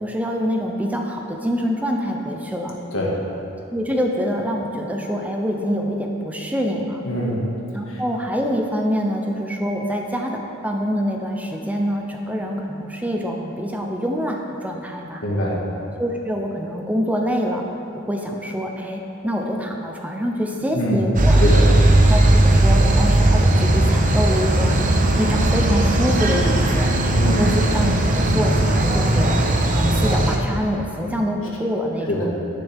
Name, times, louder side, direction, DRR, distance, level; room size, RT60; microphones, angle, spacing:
voice 1, 0.0-2.8 3.7-7.0 7.7-15.2 16.0-17.6 18.1-21.4 22.0-24.8 25.2-26.9 27.2-29.3 29.7-32.3, equal, 10° right, 1 dB, 0.6 m, -25 dB
voice 2, 7.0-7.4 7.9-8.0 15.2-15.8 20.7-21.0 21.4-21.7 27.1-27.4 32.1-32.3, equal, 75° left, -3 dB, 1.9 m, -23 dB
sound 1, 21.1-30.4, right 1 dB, 40° right, 0.8 m, -17 dB
10.0 x 10.0 x 3.5 m, 2.9 s
head